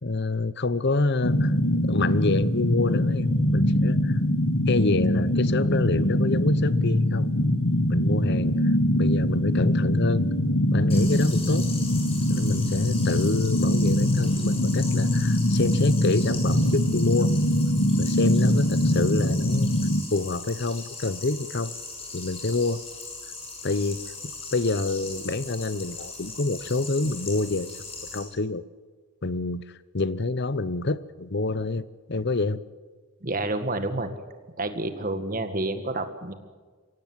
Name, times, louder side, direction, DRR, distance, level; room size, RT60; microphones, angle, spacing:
voice 1, 0.0-3.3 3.5-4.2 4.7-7.3 7.9-8.6 8.9-10.2 10.7-11.7 12.3-17.3 18.0-19.7 20.1-21.7 22.1-22.8 23.6-24.0 24.5-27.8 28.1-28.6 29.2-29.6 29.9-31.8 32.1-32.6, left 3 dB, 50° left, 16 dB, 0.8 m, -27 dB
sound 1, 1.2-20.0, left 1 dB, 80° left, 1.5 m, -23 dB
sound 2, 10.9-28.2, left 3 dB, 25° left, 6.8 m, -39 dB
voice 2, 33.2-34.1 34.6-36.3, right 2 dB, 40° right, 8 dB, 1.9 m, -29 dB
24.0 x 17.0 x 9.6 m, 1.5 s
head